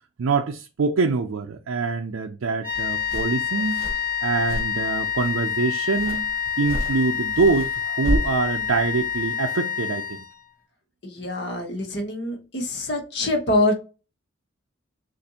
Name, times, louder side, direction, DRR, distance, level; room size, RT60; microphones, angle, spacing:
voice 1, 0.2-3.8 4.2-6.3 6.6-10.2, right 4 dB, 85° right, 0.4 m, -24 dB
sound 1, 2.6-10.5, left 8 dB, 25° left, 2.7 m, -27 dB
sound 2, 2.7-9.3, equal, 30° right, 1.1 m, -33 dB
voice 2, 11.0-13.7, left 1 dB, 55° left, 1.1 m, -25 dB
6.7 x 2.5 x 2.8 m
head